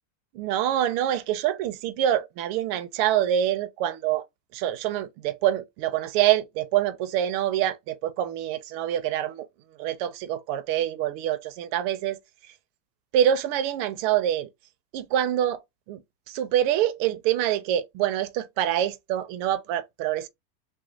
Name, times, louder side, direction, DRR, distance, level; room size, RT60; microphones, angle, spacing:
voice 1, 0.3-4.2 4.5-9.5 9.8-12.2 13.1-14.5 14.9-15.6 15.9-16.0 16.3-20.3, right 11 dB, 35° right, 0.5 m, -25 dB
3.0 x 2.0 x 3.8 m
supercardioid pair, 145°, 42 cm